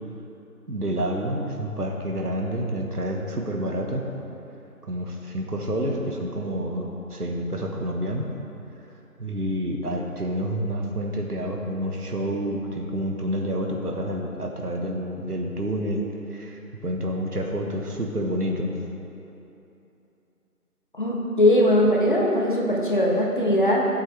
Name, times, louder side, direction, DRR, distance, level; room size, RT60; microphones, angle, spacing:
voice 1, 0.7-4.1 4.9-8.3 9.2-16.0 16.3-18.7, equal, 75° right, 1 dB, 1.6 m, -28 dB
voice 2, 20.9-23.9, left 1 dB, 35° left, -3 dB, 1.2 m, -20 dB
14.5 x 8.0 x 3.4 m, 3.0 s
figure-of-eight pair, 165°, 46 cm